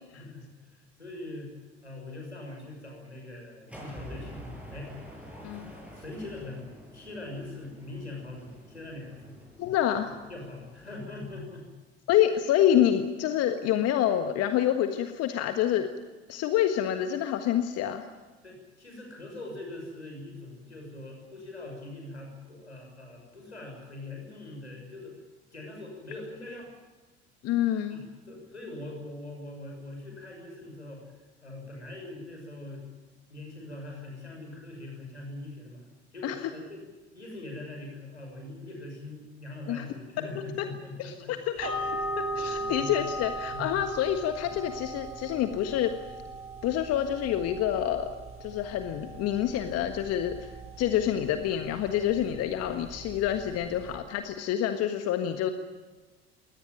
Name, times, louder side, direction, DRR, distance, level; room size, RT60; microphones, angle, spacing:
voice 1, 0.1-1.5 1.8-4.9 5.9-6.7 6.9-9.4 10.3-11.7 18.4-25.2 25.5-26.7 27.9-32.8 33.3-36.9 37.1-41.4 42.4-43.0 43.5-43.7 44.4-44.6, left 2 dB, 85° left, 1 dB, 6.4 m, -42 dB
sound 1, 3.7-11.4, equal, 5° right, 7.8 m, -47 dB
voice 2, 9.6-10.1 12.1-15.9 16.3-18.1 27.4-28.0 36.2-36.3 39.7-39.8 41.0-45.9 46.6-48.1 48.4-50.5 50.8-55.5, left 11 dB, 50° left, 8 dB, 1.6 m, -27 dB
sound 2, 41.6-53.9, right 1 dB, 40° right, 7.0 m, -38 dB
22.0 x 18.0 x 9.2 m, 1.3 s
figure-of-eight pair, 60°, 33 cm